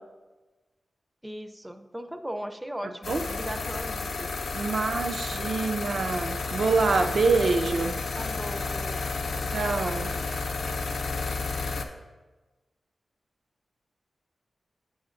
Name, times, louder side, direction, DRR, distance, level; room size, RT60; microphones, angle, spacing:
voice 1, 1.2-4.3 8.2-9.5, equal, 10° right, 8 dB, 0.4 m, -38 dB
sound 1, 3.0-11.9, left 4 dB, 85° left, 0.6 m, -31 dB
voice 2, 4.5-7.9 9.5-10.1, right 4 dB, 70° right, 6 dB, 0.5 m, -26 dB
8.1 x 7.2 x 2.5 m, 1.2 s
wide cardioid pair, 95°, 0 cm